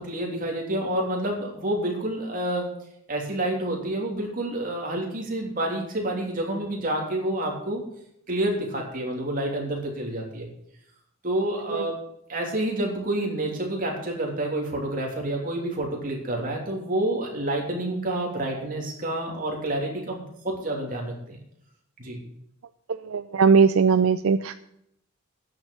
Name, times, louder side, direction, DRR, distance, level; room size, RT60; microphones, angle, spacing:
voice 1, 0.0-2.7 3.1-7.8 8.3-10.5 11.2-12.0 12.3-21.4 22.0-22.2, right 1 dB, 40° right, 0 dB, 3.2 m, -28 dB
voice 2, 23.0-24.5, right 5 dB, 75° right, 12 dB, 0.5 m, -19 dB
10.0 x 7.2 x 9.0 m, 0.75 s
head